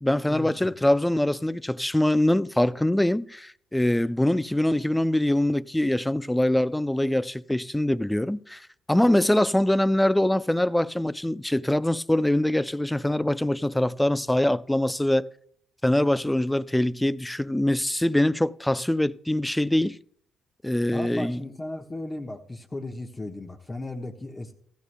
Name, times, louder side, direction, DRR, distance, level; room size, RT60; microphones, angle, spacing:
voice 1, 0.0-15.3 15.8-20.0 20.6-21.4, left 1 dB, 5° left, 0.3 m, -23 dB
voice 2, 20.9-24.5, left 2 dB, 25° left, 1.2 m, -36 dB
15.5 x 14.0 x 2.2 m
cardioid pair, 90°, 0 cm